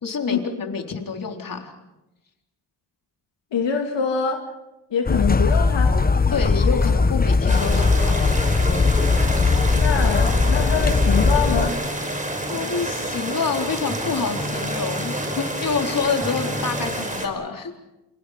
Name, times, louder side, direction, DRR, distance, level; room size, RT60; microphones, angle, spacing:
voice 1, 0.0-1.7 6.3-8.3 12.5-17.8, left 5 dB, 50° left, 2 dB, 4.0 m, -27 dB
voice 2, 3.5-4.4 4.9-5.9 9.7-11.7, left 6 dB, 90° left, 2 dB, 2.6 m, -24 dB
sound 1, 5.1-11.7, left 4 dB, 20° left, 0.9 m, -19 dB
sound 2, 7.5-17.3, right 1 dB, 20° right, 5.3 m, -29 dB
sound 3, 10.8-17.0, left 1 dB, ahead, 6.6 m, -35 dB
29.0 x 28.0 x 5.1 m, 0.98 s
cardioid pair, 100°, 42 cm